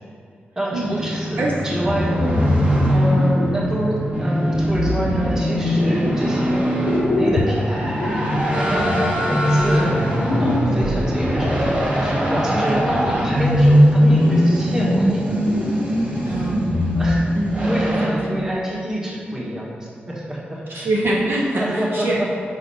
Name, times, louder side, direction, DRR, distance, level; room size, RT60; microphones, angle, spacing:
voice 1, 0.5-2.4 2.9-6.6 6.9-8.0 8.5-15.4 16.9-17.2 17.7-20.9 21.6-22.3, equal, 15° right, -5 dB, 1.5 m, -27 dB
sound 1, 0.7-18.1, equal, 35° right, 1.6 m, -20 dB
sound 2, 1.8-4.1 4.5-6.5 6.8-11.8 12.7-13.7 14.1-15.1 15.4-17.4 17.7-17.9 18.4-18.5, left 3 dB, 70° left, 0.6 m, -27 dB
voice 2, 16.3-16.8 17.3-17.6 18.0-18.1 20.7-22.2, right 2 dB, 65° right, -3 dB, 0.8 m, -24 dB
5.3 x 4.0 x 5.6 m, 2.2 s
wide cardioid pair, 95°, 4 cm